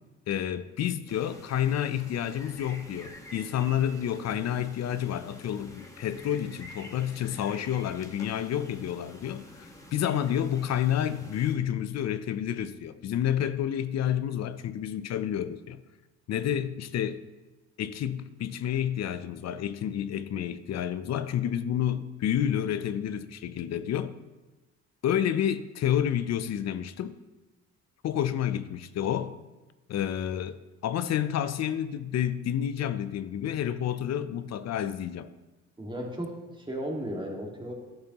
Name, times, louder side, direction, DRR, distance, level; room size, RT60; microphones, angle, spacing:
voice 1, 0.3-15.8 16.3-17.2 17.8-24.1 25.0-27.1 28.0-29.3 29.9-35.3, left 10 dB, 60° left, 0.6 m, -29 dB
sound 1, 1.1-11.6, left 1 dB, 10° left, 1.4 m, -48 dB
voice 2, 35.8-37.7, equal, 15° right, 1.9 m, -35 dB
11.0 x 6.7 x 3.0 m
cardioid pair, 90°, 30 cm